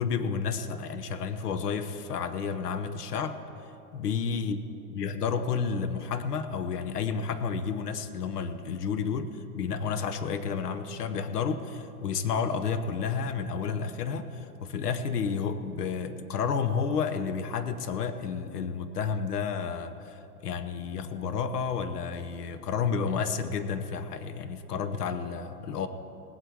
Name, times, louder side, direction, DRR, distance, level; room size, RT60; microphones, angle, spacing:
voice 1, 0.0-3.4 3.9-4.6 4.9-25.9, left 6 dB, 90° left, 11 dB, 1.0 m, -31 dB
19.0 x 8.4 x 4.7 m, 2.9 s
hypercardioid pair, 135°, 45 cm